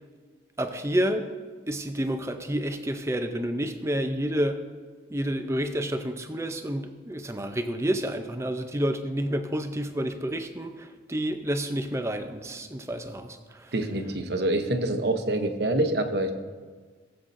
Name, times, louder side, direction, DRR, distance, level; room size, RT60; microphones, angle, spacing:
voice 1, 0.6-1.3 1.7-4.6 5.1-13.4, equal, 15° right, 7 dB, 0.5 m, -29 dB
voice 2, 13.7-16.3, right 1 dB, 65° right, 7 dB, 0.9 m, -26 dB
17.0 x 7.9 x 2.6 m, 1.5 s
head